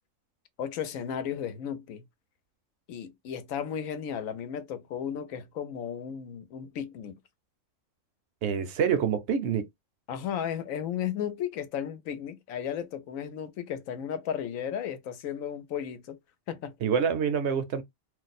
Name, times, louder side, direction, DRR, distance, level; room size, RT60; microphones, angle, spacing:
voice 1, 0.6-2.0 2.9-7.1 10.1-16.2 16.5-16.8, left 9 dB, 90° left, 1.1 m, -34 dB
voice 2, 8.4-9.7 16.8-17.8, right 7 dB, 65° right, 0.8 m, -26 dB
2.5 x 2.1 x 4.0 m
omnidirectional pair, 1.4 m